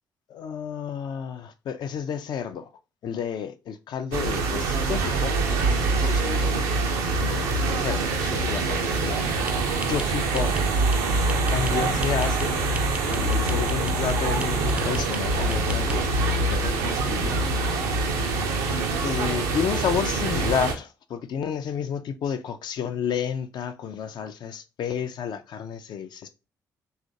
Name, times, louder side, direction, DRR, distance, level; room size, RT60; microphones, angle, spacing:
voice 1, 0.3-2.7 3.0-6.7 7.2-9.3 9.8-10.7 11.5-12.7 13.1-16.1 16.4-17.3 19.0-26.3, left 7 dB, 55° left, 0.4 m, -31 dB
sound 1, 4.1-20.8, right 3 dB, 75° right, 0.5 m, -25 dB
sound 2, 8.9-16.8, right 2 dB, 15° right, 0.4 m, -37 dB
3.0 x 2.4 x 2.6 m
figure-of-eight pair, 40°, 9 cm